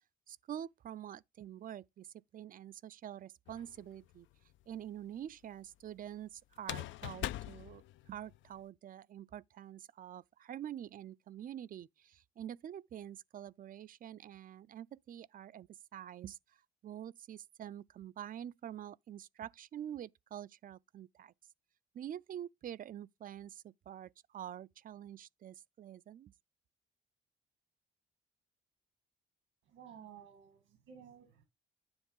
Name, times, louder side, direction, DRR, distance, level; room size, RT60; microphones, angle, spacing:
voice 1, 0.3-2.1 2.3-4.3 4.7-21.3 21.9-26.3, right 10 dB, 45° right, 0.4 m, -47 dB
sound 1, 3.5-4.1 6.6-8.6, left 14 dB, 75° left, 0.4 m, -42 dB
voice 2, 29.6-31.5, right 8 dB, 90° right, 1.8 m, -55 dB
9.7 x 3.4 x 5.4 m
cardioid pair, 90°, 20 cm